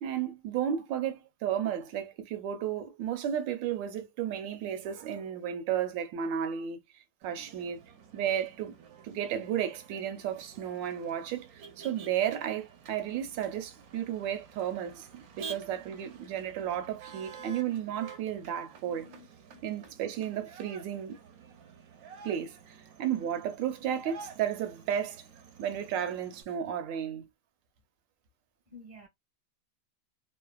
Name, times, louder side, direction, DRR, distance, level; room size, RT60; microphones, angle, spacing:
voice 1, 0.0-6.8 7.2-7.8 8.1-8.8 9.0-19.1 19.6-21.2 22.2-25.2 25.6-27.3, right 9 dB, 85° right, 1.3 m, -33 dB
Motor vehicle (road), 7.2-26.4, right 6 dB, 70° right, 0.9 m, -50 dB
voice 2, 16.8-17.6 18.8-20.0 28.7-29.1, left 3 dB, 15° left, 0.5 m, -54 dB
3.2 x 2.0 x 2.2 m
omnidirectional pair, 2.0 m